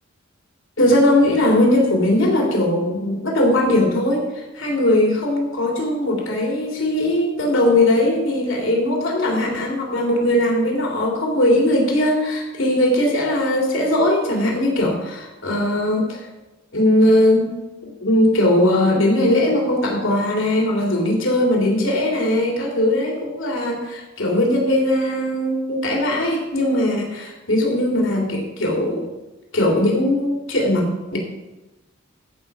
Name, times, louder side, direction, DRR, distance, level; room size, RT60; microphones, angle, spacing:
voice 1, 0.8-16.2 16.7-17.5 18.0-29.1 29.5-31.2, left 1 dB, 70° left, -1 dB, 3.1 m, -19 dB
15.0 x 6.4 x 4.8 m, 1.1 s
head